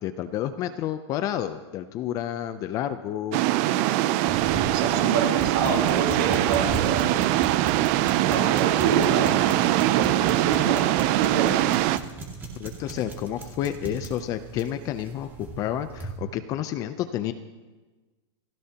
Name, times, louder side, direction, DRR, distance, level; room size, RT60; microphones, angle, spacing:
voice 1, 0.0-3.4 12.6-15.3 15.6-17.3, left 11 dB, 25° left, 10 dB, 0.5 m, -30 dB
sound 1, 3.3-12.0, right 14 dB, 30° right, 0.4 m, -22 dB
sound 2, 4.3-16.2, right 3 dB, 15° right, 2.2 m, -38 dB
voice 2, 4.7-7.2 8.3-11.7, right 5 dB, 55° right, 1 dB, 3.9 m, -28 dB
28.0 x 15.0 x 2.9 m, 1.2 s
hypercardioid pair, 160°, 15 cm